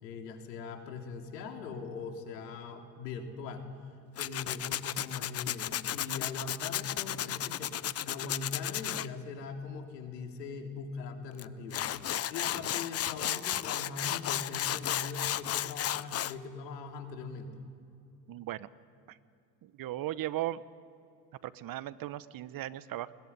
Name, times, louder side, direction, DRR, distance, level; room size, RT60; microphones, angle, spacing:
voice 1, 0.0-3.7 4.2-11.9 12.1-17.5, left 4 dB, 80° left, 4 dB, 3.4 m, -41 dB
Tools, 4.2-9.1 11.4-11.5 11.7-16.3, left 11 dB, 30° left, 0.7 m, -33 dB
voice 2, 18.3-18.7 19.1-19.2 19.6-20.6 21.4-23.1, right 14 dB, 45° right, 17 dB, 1.0 m, -37 dB
21.5 x 19.0 x 9.8 m, 2.6 s
hypercardioid pair, 80°, 49 cm